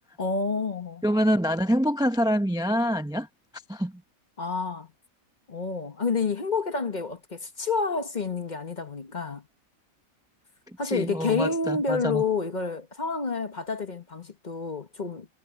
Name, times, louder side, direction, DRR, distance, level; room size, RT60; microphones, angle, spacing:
voice 1, 0.2-1.0 4.4-4.9 5.5-9.4 10.8-15.3, left 4 dB, 35° left, 1.2 m, -29 dB
voice 2, 1.0-3.3 3.7-3.9 10.8-12.2, equal, 5° right, 0.6 m, -25 dB
omnidirectional pair, 1.5 m